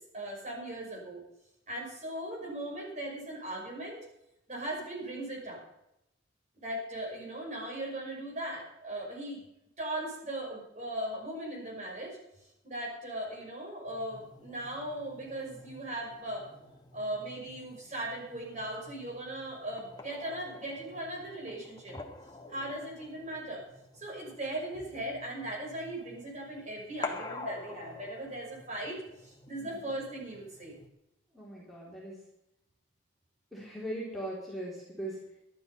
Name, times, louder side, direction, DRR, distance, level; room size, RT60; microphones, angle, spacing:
voice 1, 0.1-1.2 1.7-4.0 4.5-5.6 6.6-9.4 9.8-12.2 12.6-16.5 16.9-22.0 22.5-23.6 23.9-30.8, right 1 dB, 35° right, -2 dB, 5.6 m, -38 dB
sound 1, 13.9-30.9, left 3 dB, 20° left, 1.3 m, -48 dB
voice 2, 31.3-32.2 33.5-35.4, right 1 dB, ahead, -6 dB, 3.6 m, -40 dB
12.0 x 12.0 x 5.6 m, 0.85 s
head